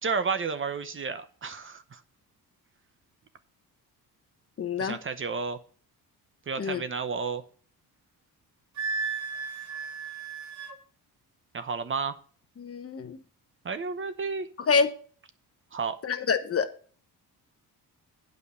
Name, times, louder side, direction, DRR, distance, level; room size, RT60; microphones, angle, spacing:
voice 1, 0.0-2.0 4.8-5.6 6.5-7.4 11.5-12.2 13.6-14.5 15.7-16.0, right 5 dB, 35° right, 0.8 m, -31 dB
voice 2, 4.6-5.0 6.6-6.8 12.6-13.2 14.7-14.9 16.0-16.7, left 5 dB, 35° left, 0.9 m, -26 dB
Wind instrument woodwind instrument, 8.8-10.8, right 5 dB, 50° right, 1.8 m, -34 dB
9.1 x 5.2 x 6.9 m
cardioid pair, 120°, 38 cm